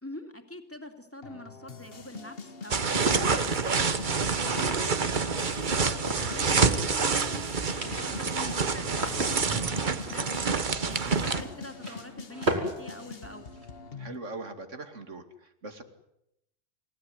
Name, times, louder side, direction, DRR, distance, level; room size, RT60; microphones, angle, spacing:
voice 1, 0.0-7.5 7.8-10.3 10.8-13.5, left 1 dB, 10° left, 4 dB, 3.0 m, -45 dB
sound 1, 1.2-14.2, left 4 dB, 50° left, 1.6 m, -44 dB
sound 2, 2.7-11.4, right 5 dB, 40° right, 1.2 m, -27 dB
sound 3, 2.8-5.3 5.9-6.9 7.1-7.2 7.5-13.7, right 1 dB, 60° right, 4.1 m, -36 dB
voice 2, 9.3-9.9 14.0-15.8, right 2 dB, 80° right, 7 dB, 2.8 m, -42 dB
28.5 x 16.5 x 9.6 m, 0.82 s
omnidirectional pair, 1.2 m